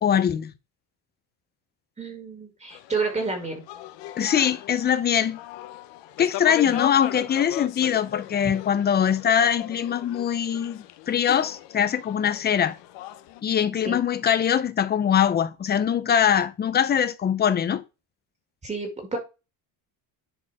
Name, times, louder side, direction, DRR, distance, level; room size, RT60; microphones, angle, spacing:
voice 1, 0.0-0.5 4.2-5.4 6.2-12.8 13.4-17.8, left 8 dB, 25° left, 0.6 m, -22 dB
voice 2, 2.0-3.6 6.6-6.8 13.8-14.0 18.6-19.2, right 4 dB, 15° right, 2.0 m, -30 dB
sound 1, 2.7-13.4, left 13 dB, 75° left, 1.1 m, -38 dB
11.0 x 4.4 x 4.8 m
cardioid pair, 175°, 44 cm